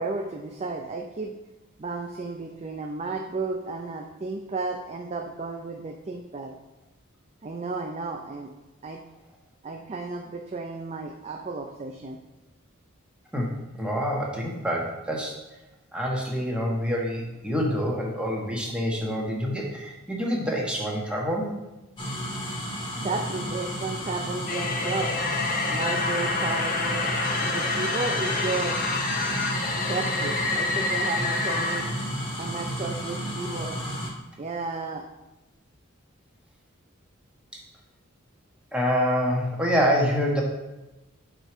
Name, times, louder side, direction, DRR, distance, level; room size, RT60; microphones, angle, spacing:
voice 1, 0.0-1.4 1.8-6.5 7.4-8.5 8.8-9.0 9.6-12.2 23.0-25.1 25.7-27.0 27.4-28.8 29.8-31.9 32.4-33.8 34.4-35.0, right 3 dB, 30° right, 3 dB, 0.5 m, -33 dB
voice 2, 13.7-15.3 15.9-21.6 38.7-40.4, equal, 5° right, -2 dB, 1.2 m, -26 dB
sound 1, 22.0-34.1, equal, 25° left, 1.4 m, -32 dB
sound 2, 24.5-31.9, left 3 dB, 45° left, 0.9 m, -28 dB
5.0 x 4.5 x 6.0 m, 1.0 s
head